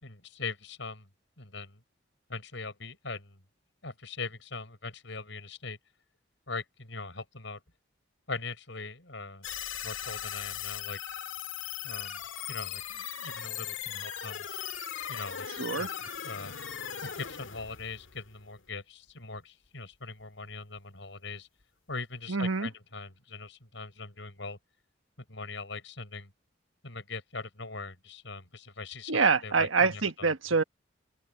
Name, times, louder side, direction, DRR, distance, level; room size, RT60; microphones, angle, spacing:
voice 1, 0.0-1.1 1.4-1.8 2.3-3.4 3.8-5.8 6.5-7.6 8.3-9.5 9.8-11.0 11.8-12.2 12.5-14.5 15.1-16.5 17.0-21.5 21.9-24.6 25.3-26.3 26.8-30.3, left 3 dB, 70° left, 6.3 m, -41 dB
sound 1, 9.4-18.7, left 9 dB, 85° left, 1.8 m, -38 dB
voice 2, 15.6-15.9 22.3-22.7 29.1-30.6, right 4 dB, 85° right, 1.3 m, -26 dB
head